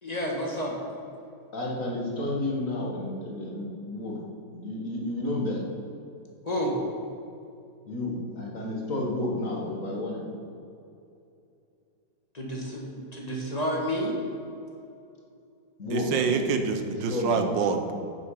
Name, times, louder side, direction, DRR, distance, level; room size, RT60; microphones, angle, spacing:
voice 1, 0.0-0.7 6.4-6.8 12.3-14.2, equal, 20° left, -2 dB, 1.7 m, -30 dB
voice 2, 1.5-4.2 4.5-5.6 7.9-10.2 15.8-16.4 16.8-17.5, left 1 dB, 45° left, -2 dB, 2.1 m, -31 dB
voice 3, 15.9-17.9, right 6 dB, 85° right, 6 dB, 1.6 m, -26 dB
9.4 x 7.4 x 5.7 m, 2.7 s
omnidirectional pair, 1.9 m